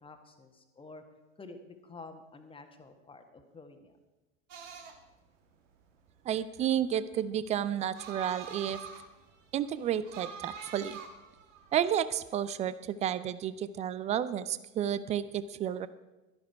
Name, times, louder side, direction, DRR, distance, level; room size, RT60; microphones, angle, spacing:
voice 1, 0.0-1.0 1.4-4.0, left 3 dB, 15° left, 6 dB, 1.5 m, -50 dB
sound 1, 4.5-12.2, right 6 dB, 60° right, 1.8 m, -46 dB
voice 2, 6.3-8.8 9.5-11.0 11.7-15.9, right 10 dB, 20° right, 16 dB, 0.4 m, -31 dB
12.0 x 11.5 x 4.6 m, 1.1 s
figure-of-eight pair, 85°, 41 cm